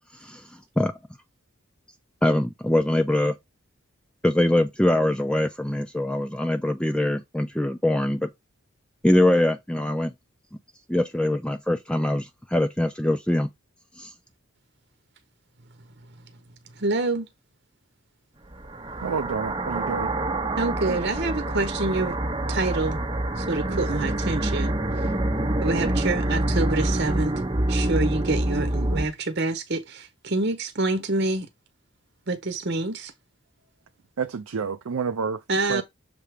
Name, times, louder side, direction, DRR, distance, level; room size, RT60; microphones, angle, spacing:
voice 1, 0.1-0.9 2.2-3.4 4.2-8.3 9.0-10.1 10.9-13.5 14.0-14.1, left 1 dB, 5° left, 0.4 m, -23 dB
voice 2, 16.8-17.3 20.6-22.2 22.5-23.0 23.4-24.7 25.6-27.3 27.7-31.5 32.3-33.1 35.5-35.8, right 2 dB, 50° right, 0.9 m, -26 dB
sound 1, 18.5-29.1, right 1 dB, 20° right, 0.8 m, -26 dB
voice 3, 19.0-20.1 20.9-21.0 23.7-23.8 34.2-35.4 35.7-35.8, right 5 dB, 85° right, 0.5 m, -29 dB
6.8 x 3.4 x 5.0 m
head